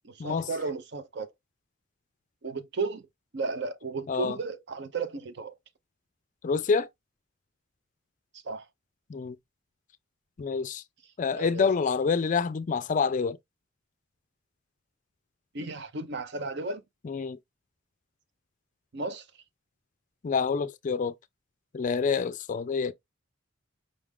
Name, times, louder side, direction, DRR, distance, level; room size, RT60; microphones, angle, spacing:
voice 1, 0.0-1.3 2.4-3.0 3.3-5.5 8.3-8.7 11.3-11.7 15.5-16.8 18.9-19.3, right 3 dB, 60° right, 0.7 m, -34 dB
voice 2, 4.1-4.4 6.4-6.9 9.1-9.4 10.4-10.8 11.2-13.4 17.0-17.4 20.2-21.1 21.7-22.9, left 5 dB, 40° left, 0.4 m, -27 dB
5.2 x 2.4 x 3.5 m
head